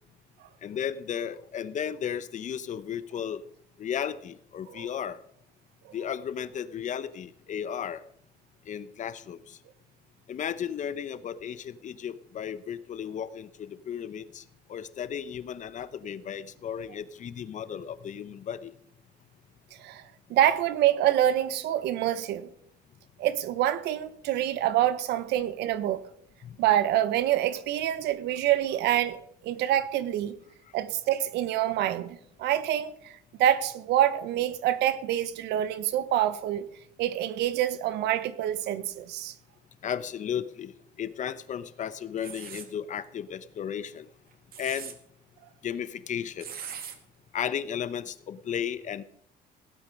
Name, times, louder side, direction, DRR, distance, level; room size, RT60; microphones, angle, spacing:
voice 1, 0.6-3.4 3.8-5.2 5.9-8.0 8.7-9.6 10.3-14.4 14.7-18.7 26.4-26.6 39.8-44.1 44.6-44.9 45.6-46.5 47.3-49.0, left 8 dB, 45° left, 0.9 m, -34 dB
voice 2, 20.3-22.5 23.2-26.0 26.6-30.4 30.7-36.7 37.0-39.3, right 12 dB, 80° right, 1.0 m, -26 dB
sound 1, 42.2-42.7 44.3-44.9 46.4-47.0, right 8 dB, 60° right, 1.9 m, -40 dB
17.0 x 8.9 x 5.3 m
cardioid pair, 110°, 17 cm